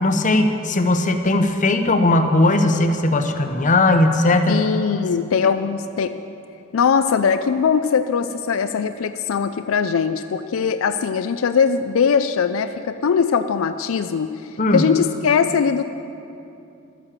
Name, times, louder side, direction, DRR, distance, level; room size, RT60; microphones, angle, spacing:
voice 1, 0.0-4.6 14.6-14.9, left 2 dB, 40° left, 7 dB, 0.8 m, -18 dB
voice 2, 4.5-6.1 6.7-14.3 14.7-15.8, left 6 dB, 80° left, 10 dB, 0.4 m, -20 dB
12.5 x 9.9 x 7.3 m, 2.8 s
head